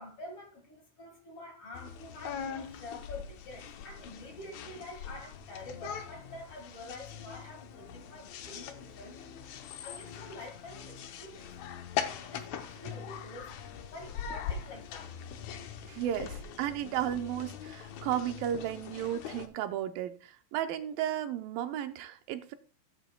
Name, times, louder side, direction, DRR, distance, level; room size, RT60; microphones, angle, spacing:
voice 1, 0.0-9.4 9.8-11.5 12.0-13.5 13.9-15.2, left 1 dB, 45° left, 2.5 m, -47 dB
sound 1, 1.7-19.5, left 8 dB, 75° left, 1.7 m, -42 dB
voice 2, 15.8-22.5, right 11 dB, 80° right, 2.4 m, -34 dB
15.5 x 7.9 x 2.2 m
omnidirectional pair, 4.1 m